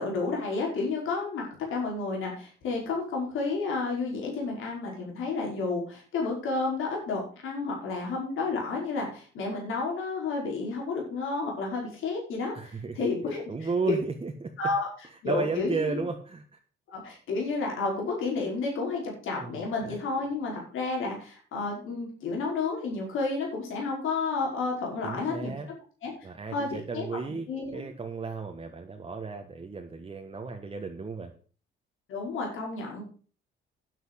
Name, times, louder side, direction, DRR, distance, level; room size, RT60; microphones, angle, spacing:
voice 1, 0.0-1.4 1.7-13.5 13.9-14.0 14.6-14.9 15.2-15.8 16.9-25.5 26.0-26.1 26.5-27.1 27.5-27.9 32.1-33.0, left 3 dB, 75° left, -1 dB, 5.4 m, -31 dB
voice 2, 12.5-13.0 13.5-14.5 15.2-16.4 19.4-20.0 25.0-25.7 26.2-31.3, right 4 dB, 25° right, 3 dB, 1.5 m, -34 dB
9.3 x 8.4 x 6.4 m, 0.41 s
cardioid pair, 105°, 21 cm